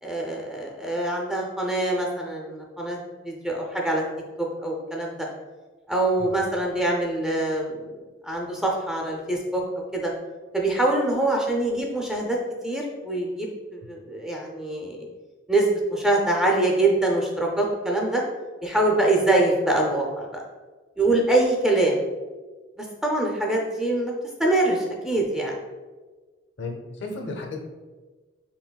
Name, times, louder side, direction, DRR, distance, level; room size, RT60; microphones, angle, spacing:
voice 1, 0.0-3.0 3.2-4.0 4.4-5.1 5.9-9.6 9.9-10.1 10.5-12.4 12.6-15.1 15.5-18.2 18.6-20.4 21.0-22.0 22.8-24.1 24.4-25.6, right 2 dB, 5° right, -2 dB, 0.4 m, -24 dB
voice 2, 26.6-27.7, left 3 dB, 70° left, 1 dB, 0.7 m, -34 dB
4.5 x 3.4 x 2.2 m, 1.3 s
head